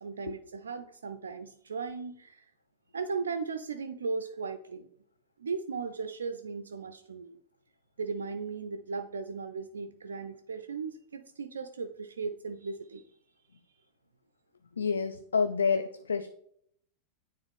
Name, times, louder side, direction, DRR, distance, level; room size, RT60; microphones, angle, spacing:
voice 1, 0.0-2.5 2.9-4.9 5.4-7.4 8.0-13.0 13.5-13.6, right 5 dB, 70° right, 8 dB, 0.3 m, -37 dB
voice 2, 14.8-16.3, left 5 dB, 70° left, 10 dB, 0.3 m, -28 dB
9.2 x 3.5 x 3.5 m, 0.68 s
figure-of-eight pair, 90°, 0 cm